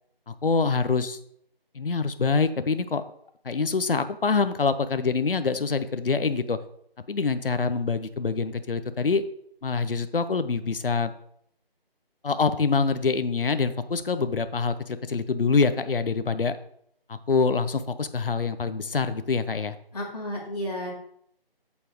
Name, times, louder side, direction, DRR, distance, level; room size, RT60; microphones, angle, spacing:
voice 1, 0.3-1.2 1.7-3.0 3.4-6.6 7.1-9.2 9.6-11.1 12.2-16.5 17.1-19.8, left 4 dB, 65° left, 11 dB, 0.8 m, -25 dB
voice 2, 19.9-20.9, left 1 dB, 40° left, -3 dB, 2.5 m, -32 dB
8.3 x 7.2 x 3.0 m, 0.69 s
figure-of-eight pair, 170°, 30 cm